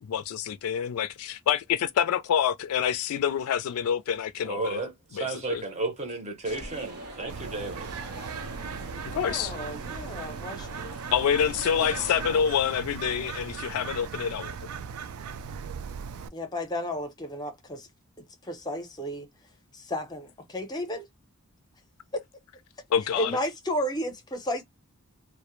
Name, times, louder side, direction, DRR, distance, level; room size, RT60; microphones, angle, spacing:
voice 1, 0.0-4.9 5.1-5.6 9.2-9.5 11.1-14.6 22.9-23.4, left 8 dB, 75° left, 0.3 m, -27 dB
voice 2, 4.4-8.0, right 3 dB, 30° right, 0.7 m, -33 dB
sound 1, 6.4-12.4, right 2 dB, 90° right, 0.8 m, -41 dB
Bird, 7.3-16.3, right 6 dB, 70° right, 0.3 m, -38 dB
voice 3, 9.1-10.9 16.3-17.9 18.2-19.3 19.7-21.1 23.1-24.6, left 1 dB, 20° left, 0.6 m, -33 dB
2.1 x 2.0 x 2.9 m
head